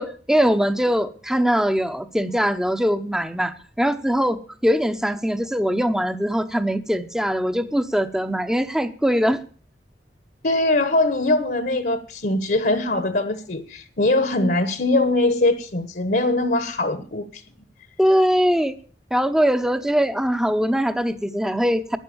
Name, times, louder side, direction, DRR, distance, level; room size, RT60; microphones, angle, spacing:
voice 1, 0.0-9.4 18.0-18.8 19.1-22.0, equal, 5° right, 0.8 m, -21 dB
voice 2, 10.4-17.4, left 2 dB, 60° left, 1.2 m, -22 dB
11.5 x 9.7 x 7.0 m
head